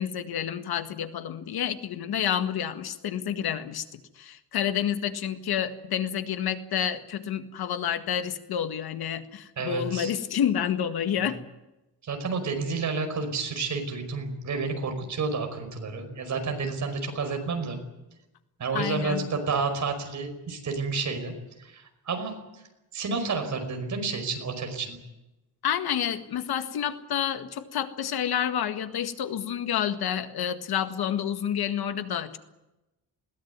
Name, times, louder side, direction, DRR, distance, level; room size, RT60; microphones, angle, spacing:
voice 1, 0.0-3.8 4.2-11.4 18.7-19.3 25.6-32.4, left 9 dB, 75° left, 8 dB, 1.9 m, -29 dB
voice 2, 9.6-10.1 11.2-11.3 12.0-17.8 18.6-21.3 21.6-22.3 22.9-25.0, right 4 dB, 50° right, 5 dB, 5.4 m, -30 dB
21.0 x 18.0 x 9.6 m, 0.96 s
wide cardioid pair, 170°, 38 cm